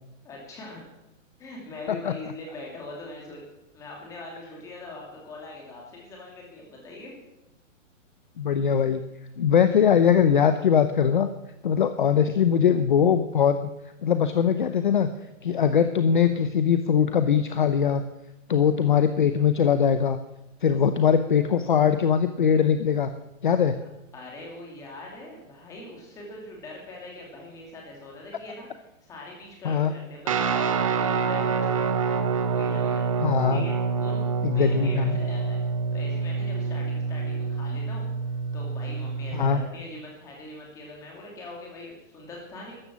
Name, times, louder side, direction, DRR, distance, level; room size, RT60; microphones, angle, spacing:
voice 1, 0.2-0.8 1.4-3.4 3.7-7.1 24.1-32.1 32.5-33.1 33.5-35.6 35.9-38.1 38.5-42.7, left 2 dB, 10° left, -1 dB, 2.6 m, -42 dB
voice 2, 8.4-9.0 9.4-11.3 11.6-13.7 14.0-15.1 15.4-18.0 18.5-20.2 20.6-23.1 23.4-23.8 29.6-29.9 33.2-33.6 34.4-35.2 39.3-39.6, left 7 dB, 40° left, 10 dB, 0.7 m, -21 dB
Guitar, 30.3-39.6, right 5 dB, 25° right, 0.8 m, -27 dB
13.5 x 11.0 x 7.3 m, 0.91 s
hypercardioid pair, 180°, 39 cm